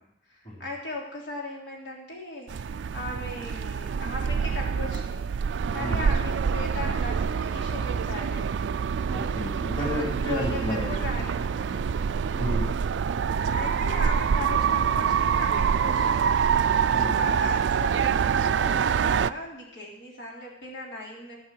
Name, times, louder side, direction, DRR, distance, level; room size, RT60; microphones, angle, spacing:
voice 1, 0.3-5.2 5.7-8.6 9.8-11.8 13.5-16.2 17.0-21.4, left 2 dB, 85° left, -2 dB, 3.3 m, -38 dB
sound 1, 2.5-19.3, right 6 dB, 90° right, 0.4 m, -26 dB
voice 2, 9.0-10.9 12.3-12.7 16.9-17.4, equal, 35° left, -3 dB, 3.8 m, -32 dB
16.5 x 5.5 x 7.7 m, 0.79 s
head